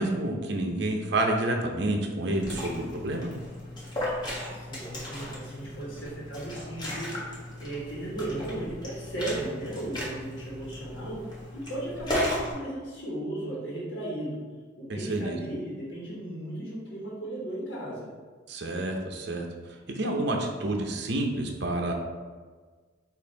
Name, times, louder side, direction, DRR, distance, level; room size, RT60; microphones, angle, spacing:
voice 1, 0.0-3.3 14.9-15.4 18.5-19.5 19.9-21.9, right 1 dB, 60° right, 2 dB, 0.7 m, -29 dB
Liquid, 2.2-12.5, left 1 dB, 25° left, 1.1 m, -36 dB
voice 2, 4.5-11.2 11.5-14.4 14.8-18.1, right 1 dB, 75° left, -6 dB, 1.2 m, -36 dB
5.3 x 2.6 x 3.9 m, 1.4 s
head